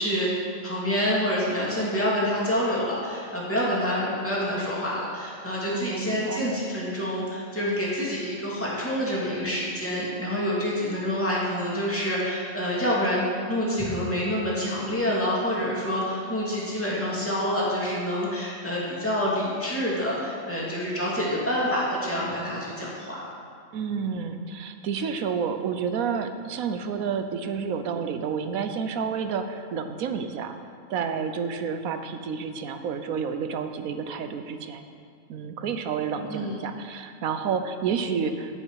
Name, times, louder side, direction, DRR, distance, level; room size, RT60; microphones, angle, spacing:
voice 1, 0.0-23.2 36.3-36.6, equal, 10° left, -7 dB, 2.3 m, -27 dB
voice 2, 5.7-6.5 23.7-30.5 30.9-34.8 35.3-38.6, right 6 dB, 90° right, 8 dB, 1.2 m, -30 dB
15.5 x 5.5 x 4.8 m, 2.3 s
omnidirectional pair, 1.4 m